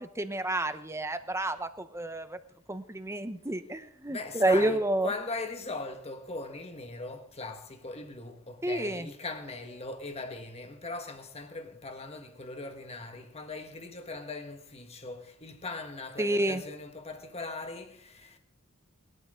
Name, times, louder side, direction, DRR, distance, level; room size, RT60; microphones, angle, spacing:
voice 1, 0.0-2.4 2.7-5.1 8.6-9.1 16.2-16.6, right 1 dB, 15° right, 0.9 m, -29 dB
voice 2, 4.0-18.4, left 3 dB, 30° left, 1.7 m, -40 dB
20.0 x 12.5 x 3.8 m
head